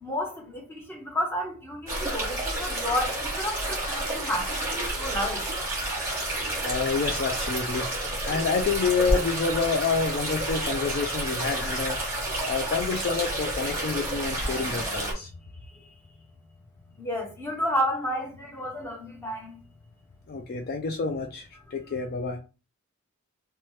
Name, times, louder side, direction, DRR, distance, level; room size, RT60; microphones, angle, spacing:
voice 1, 0.0-5.4 17.0-19.6, equal, 10° left, 0.8 m, -31 dB
sound 1, 1.9-15.1, right 1 dB, 10° right, 1.1 m, -30 dB
voice 2, 6.6-12.0 12.4-15.3 20.3-22.4, left 5 dB, 45° left, 0.3 m, -28 dB
2.8 x 2.2 x 3.1 m
head